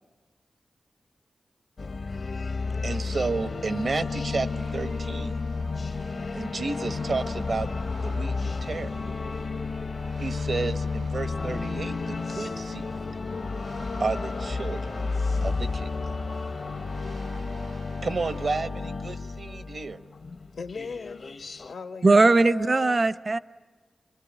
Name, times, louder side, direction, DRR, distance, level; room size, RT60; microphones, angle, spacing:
sound 1, 1.8-21.7, left 4 dB, 65° left, 0.9 m, -32 dB
voice 1, 2.8-5.4 6.3-7.7 8.0-8.9 10.2-12.9 14.0-16.0 18.0-20.0, right 3 dB, 70° right, 1.1 m, -32 dB
sound 2, 4.3-18.5, right 3 dB, 85° right, 2.5 m, -49 dB
voice 2, 20.5-21.3 21.7-23.0, left 4 dB, 90° left, 1.3 m, -37 dB
voice 3, 22.0-23.4, right 3 dB, 50° right, 0.8 m, -19 dB
27.0 x 23.5 x 9.1 m
cardioid pair, 45°, 0 cm